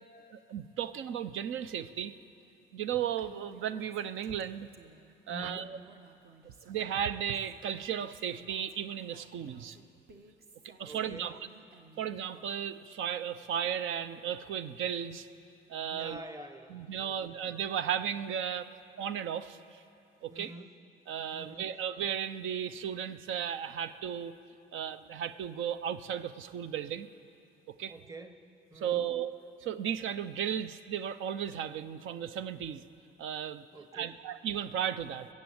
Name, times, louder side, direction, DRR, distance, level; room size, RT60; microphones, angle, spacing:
voice 1, 0.3-2.1 2.7-4.7 5.3-5.8 6.6-9.8 10.8-11.3 12.0-15.3 15.7-16.2 16.7-18.7 19.0-19.8 20.2-20.5 21.1-24.3 24.7-27.1 27.8-27.9 28.8-29.3 29.6-32.8 33.2-33.6 33.9-35.3, right 9 dB, 80° right, 13 dB, 0.6 m, -35 dB
Female speech woman speaking, 3.2-5.1 5.5-7.5 8.0-12.1, right 4 dB, 50° right, 1.2 m, -57 dB
voice 2, 5.3-5.8 10.8-11.4 15.9-17.3 20.3-20.8 21.3-21.8 27.9-29.1 33.7-34.2, right 1 dB, 15° right, 9 dB, 1.0 m, -47 dB
21.5 x 7.5 x 7.9 m, 2.7 s
cardioid pair, 90°, 20 cm